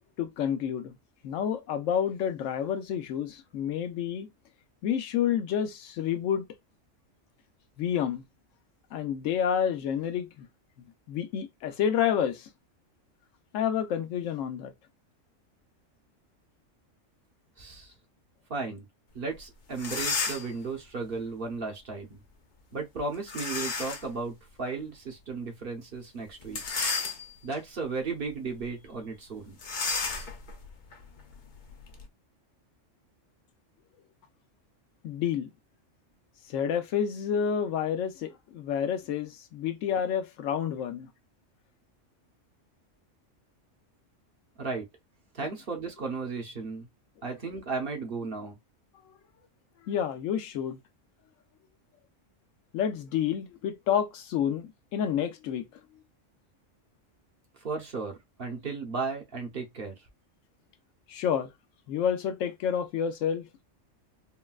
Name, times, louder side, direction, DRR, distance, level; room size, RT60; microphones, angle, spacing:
voice 1, 0.2-1.0 1.2-4.3 4.8-6.4 7.8-8.2 8.9-10.5 11.1-12.5 13.5-14.7 35.0-35.5 36.5-41.1 49.8-50.8 52.7-55.8 61.1-61.5 61.9-63.5, left 8 dB, 80° left, 1.0 m, -29 dB
voice 2, 17.6-17.9 18.5-18.8 19.1-22.2 22.7-26.6 27.4-29.6 44.6-44.9 45.3-46.9 47.2-48.6 57.6-59.9, right 4 dB, 50° right, 1.0 m, -35 dB
sound 1, 19.4-19.5 19.7-20.6 23.3-24.1 24.7-24.8 26.4-27.6 28.1-28.3 28.6-28.7 29.6-32.1, left 4 dB, 50° left, 0.6 m, -33 dB
3.8 x 2.2 x 2.3 m
omnidirectional pair, 1.3 m